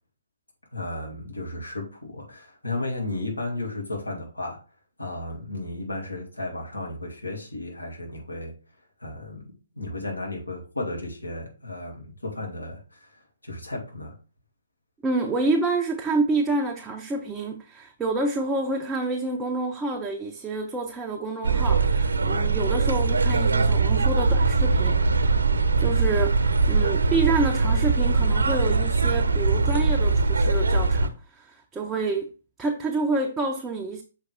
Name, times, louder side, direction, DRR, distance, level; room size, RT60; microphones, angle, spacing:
voice 1, 0.7-4.6 5.0-8.5 9.0-9.4 9.7-14.1, left 2 dB, 80° left, 2.2 m, -34 dB
voice 2, 15.0-25.0 25.8-32.3 32.6-34.0, right 3 dB, 10° right, 0.7 m, -28 dB
sound 1, 21.4-31.1, right 3 dB, 60° right, 0.9 m, -21 dB
6.6 x 4.8 x 3.4 m
figure-of-eight pair, 130°, 0 cm